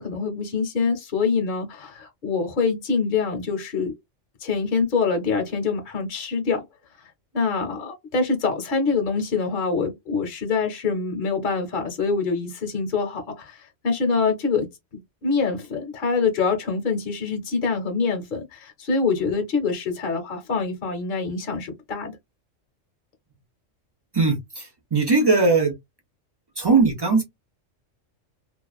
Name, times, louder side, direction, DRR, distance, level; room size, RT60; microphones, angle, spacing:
voice 1, 0.0-3.9 4.4-6.6 7.3-14.7 15.2-22.2, left 4 dB, 45° left, 0.8 m, -25 dB
voice 2, 24.1-25.7 26.6-27.2, right 4 dB, 40° right, 0.3 m, -19 dB
2.4 x 2.3 x 2.3 m
omnidirectional pair, 1.3 m